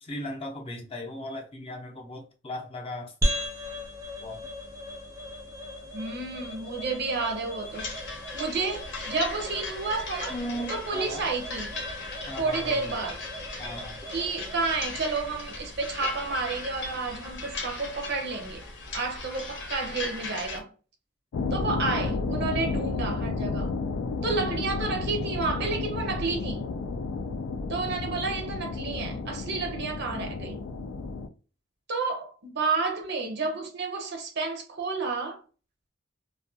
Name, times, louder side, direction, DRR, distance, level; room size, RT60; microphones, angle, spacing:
voice 1, 0.0-3.1 4.2-4.5 10.3-11.3 12.3-13.0 13.6-14.1, left 1 dB, 30° left, 0.6 m, -37 dB
sound 1, 3.2-17.8, equal, 15° right, 0.6 m, -37 dB
voice 2, 5.9-10.4 10.7-11.7 12.4-13.2 14.1-18.6 18.9-20.7 21.5-23.7 24.2-26.7 27.7-30.6 31.9-35.4, right 4 dB, 55° right, 0.6 m, -31 dB
sound 2, 7.7-20.6, left 3 dB, 60° left, 0.7 m, -38 dB
sound 3, 21.3-31.3, left 4 dB, 85° left, 0.4 m, -32 dB
2.3 x 2.2 x 2.6 m
head